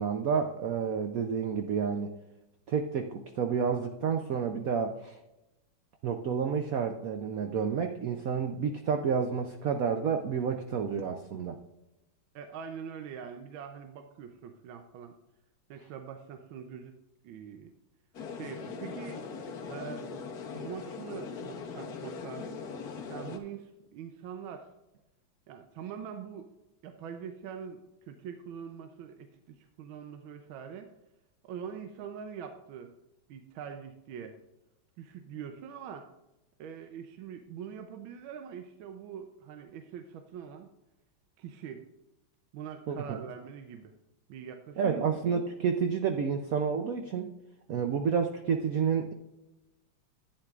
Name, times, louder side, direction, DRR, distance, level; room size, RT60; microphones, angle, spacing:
voice 1, 0.0-2.1 2.7-5.2 6.0-11.6 42.9-43.2 44.8-47.3 47.7-49.1, right 6 dB, 90° right, 5 dB, 0.7 m, -30 dB
voice 2, 12.3-15.1 15.7-16.9 17.2-17.7 18.3-19.2 19.7-20.3 20.5-22.6 23.1-24.7 25.5-26.5 26.8-30.9 31.4-32.9 33.3-34.4 35.0-36.1 36.6-40.7 41.4-41.8 42.5-43.9 44.3-45.2, right 7 dB, 75° right, 6 dB, 1.5 m, -43 dB
sound 1, 18.1-23.4, left 5 dB, 55° left, 1.3 m, -40 dB
11.5 x 9.2 x 2.4 m, 0.95 s
omnidirectional pair, 2.3 m